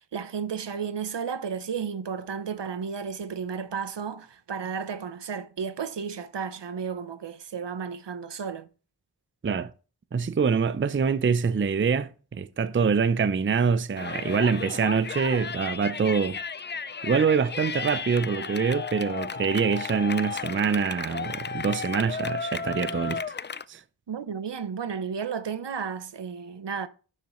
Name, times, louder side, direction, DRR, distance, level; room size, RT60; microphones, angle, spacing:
voice 1, 0.1-8.7 24.1-26.9, right 6 dB, 75° right, 0.8 m, -33 dB
voice 2, 10.1-16.4 17.0-23.3 23.7-23.8, right 6 dB, 30° right, 0.5 m, -25 dB
Yell, 14.0-23.6, left 5 dB, 30° left, 0.3 m, -34 dB
7.9 x 7.3 x 3.1 m
wide cardioid pair, 65°, 43 cm